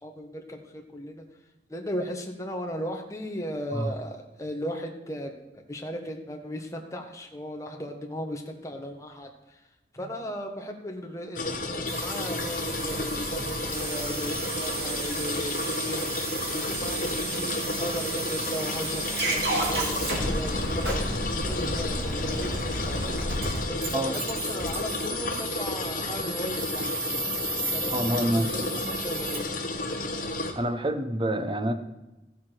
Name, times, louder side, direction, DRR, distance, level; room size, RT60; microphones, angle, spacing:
voice 1, 0.0-1.2 1.7-9.3 9.9-11.4 11.7-16.1 16.5-23.2 23.7-27.3 27.7-28.1 28.5-29.5, equal, 20° left, 2 dB, 1.5 m, -37 dB
sound 1, 11.4-30.5, left 2 dB, 50° left, 1.4 m, -32 dB
sound 2, 11.9-29.4, right 2 dB, 65° right, 3.4 m, -32 dB
voice 2, 27.9-28.9 30.6-31.7, right 1 dB, 30° right, 9 dB, 0.9 m, -27 dB
14.5 x 7.6 x 6.0 m, 1.0 s
head